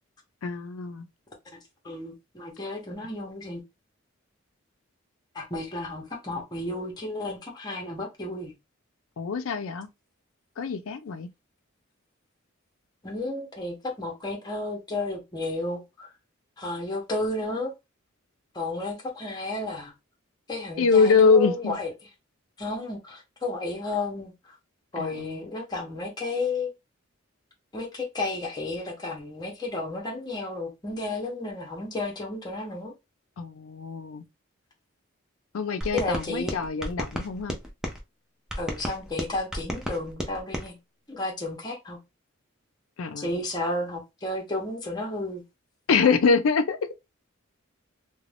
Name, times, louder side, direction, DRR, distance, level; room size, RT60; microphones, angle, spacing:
voice 1, 0.4-1.1 9.2-9.9 10.6-11.3 20.8-21.8 25.0-25.3 33.4-34.2 35.5-37.5 43.0-43.4 45.9-46.8, left 5 dB, 80° left, 0.4 m, -24 dB
voice 2, 1.8-3.6 5.3-8.5 13.0-16.1 16.6-17.7 18.5-19.9 20.5-21.9 22.6-24.3 24.9-26.7 27.7-32.9 35.9-36.6 38.6-40.8 41.1-42.0 43.2-45.4, left 2 dB, 20° left, 0.8 m, -32 dB
sound 1, 35.8-38.0 38.5-40.7, equal, 5° right, 0.5 m, -33 dB
2.5 x 2.2 x 3.3 m
head